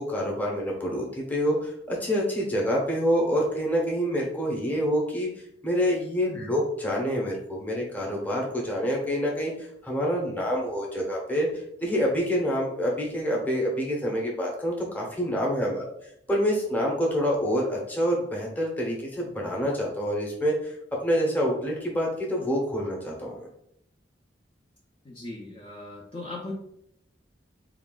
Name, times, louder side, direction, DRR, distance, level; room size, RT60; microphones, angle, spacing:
voice 1, 0.0-5.3 5.6-11.5 11.8-15.9 16.3-20.7 21.0-23.5, equal, 10° left, -3 dB, 0.8 m, -27 dB
voice 2, 25.0-26.5, left 2 dB, 30° left, -4 dB, 0.6 m, -38 dB
3.9 x 2.4 x 3.7 m, 0.75 s
head